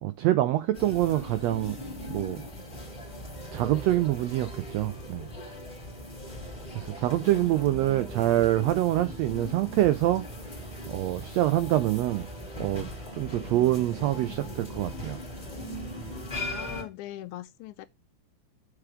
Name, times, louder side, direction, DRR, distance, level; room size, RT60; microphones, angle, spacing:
voice 1, 0.0-1.8 2.1-2.4 3.5-5.3 6.7-10.2 10.9-12.3 12.6-12.9 13.1-15.2, right 14 dB, 85° right, 1.5 m, -25 dB
sound 1, 0.7-16.8, equal, 20° left, 1.6 m, -39 dB
voice 2, 7.0-7.7 16.5-17.9, left 14 dB, 80° left, 1.9 m, -42 dB
6.7 x 4.8 x 5.1 m
omnidirectional pair, 3.6 m